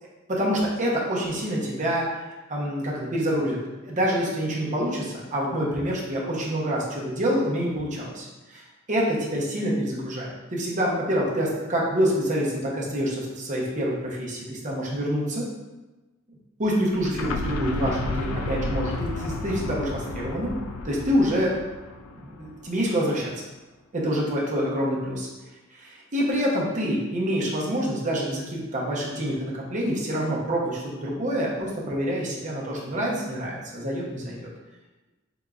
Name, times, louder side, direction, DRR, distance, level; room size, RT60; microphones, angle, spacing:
voice 1, 0.3-3.6 3.8-15.5 16.6-20.5 20.8-21.5 22.1-23.3 23.9-25.3 25.7-34.5, equal, 40° right, -4 dB, 0.8 m, -27 dB
sound 1, 16.9-22.7, left 2 dB, 90° left, 0.4 m, -32 dB
3.9 x 3.5 x 2.4 m, 1.1 s
head